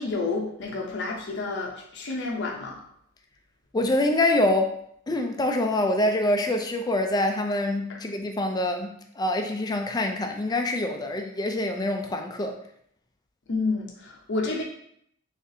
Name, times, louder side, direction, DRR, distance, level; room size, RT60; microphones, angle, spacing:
voice 1, 0.0-2.8 7.9-8.0 13.5-14.6, left 3 dB, 55° left, -1 dB, 0.6 m, -30 dB
voice 2, 3.7-4.7 5.1-8.9 9.2-12.6, left 1 dB, 20° left, 4 dB, 0.4 m, -25 dB
4.0 x 3.5 x 2.7 m, 0.70 s
head